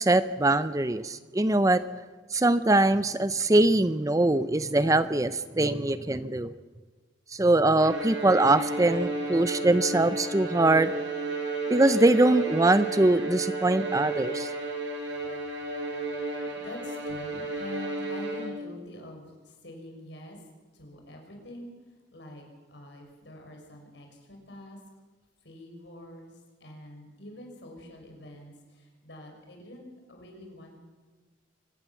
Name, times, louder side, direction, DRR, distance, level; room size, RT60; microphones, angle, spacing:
voice 1, 0.0-1.8 2.3-6.5 7.3-10.9 11.7-14.5, right 2 dB, 15° right, 13 dB, 0.6 m, -22 dB
Bowed string instrument, 7.8-18.8, right 3 dB, 70° right, 5.2 m, -32 dB
voice 2, 16.2-20.4 20.7-21.7 22.1-22.4 22.7-24.8 25.4-26.3 26.6-30.8, left 1 dB, 60° left, 2 dB, 6.3 m, -45 dB
25.0 x 17.5 x 7.2 m, 1.3 s
head